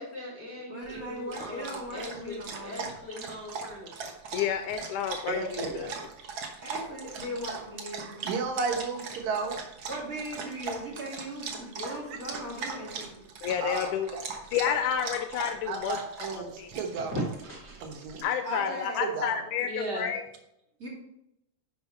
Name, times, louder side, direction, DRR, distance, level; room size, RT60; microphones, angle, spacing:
voice 1, 0.0-4.0 17.0-17.8 19.6-20.2, equal, 50° left, -3 dB, 1.3 m, -38 dB
voice 2, 0.7-2.8 6.6-8.3 9.9-13.2 18.4-19.1 20.8-20.9, equal, 25° right, -3 dB, 2.9 m, -38 dB
Dog, 0.8-18.2, right 5 dB, 65° right, 1.2 m, -40 dB
voice 3, 4.3-5.9 13.4-14.1 14.5-16.0 16.6-16.7 18.2-19.7 19.9-20.2, left 9 dB, 80° left, 7 dB, 1.9 m, -30 dB
voice 4, 5.3-6.0 7.9-9.6 12.1-12.2 13.6-14.3 15.7-17.2 17.8-18.3 18.6-18.7 19.0-19.4, right 4 dB, 80° right, 3 dB, 2.8 m, -34 dB
10.5 x 5.7 x 4.2 m, 0.83 s
omnidirectional pair, 3.9 m